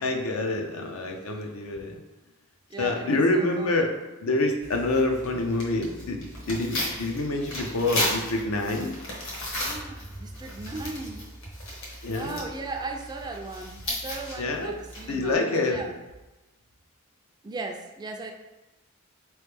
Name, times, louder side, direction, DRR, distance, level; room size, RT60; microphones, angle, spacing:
voice 1, 0.0-2.0 2.8-3.9 4.2-8.9 12.0-12.4 14.4-14.7 15.0-15.9, left 2 dB, 75° left, 2 dB, 0.6 m, -27 dB
voice 2, 2.7-3.8 9.6-11.2 12.0-15.9 17.4-18.3, right 3 dB, 20° right, 4 dB, 0.3 m, -37 dB
Tearing, 4.6-15.3, left 1 dB, 60° left, 1.2 m, -35 dB
4.2 x 3.1 x 3.4 m, 1.1 s
head